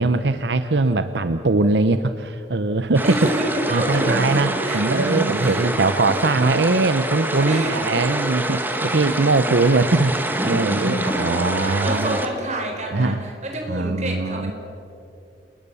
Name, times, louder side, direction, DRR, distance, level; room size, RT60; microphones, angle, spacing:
voice 1, 0.0-3.2 3.7-12.2 12.9-13.2 13.7-14.5, right 3 dB, 80° right, 10 dB, 0.8 m, -21 dB
sound 1, 2.9-12.3, right 1 dB, 10° right, 1.7 m, -26 dB
voice 2, 3.0-5.7 7.4-7.8 10.6-14.5, right 1 dB, 40° right, 3 dB, 4.6 m, -27 dB
29.0 x 20.5 x 7.0 m, 2.6 s
head